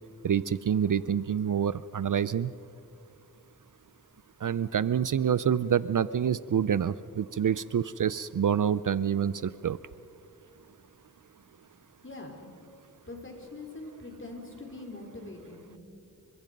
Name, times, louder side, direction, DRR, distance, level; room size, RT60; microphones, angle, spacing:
voice 1, 0.2-2.5 4.4-9.8, right 8 dB, 55° right, 17 dB, 0.5 m, -27 dB
voice 2, 13.1-15.7, left 2 dB, 30° left, 2 dB, 4.7 m, -43 dB
29.5 x 24.0 x 5.3 m, 2.5 s
wide cardioid pair, 70°, 38 cm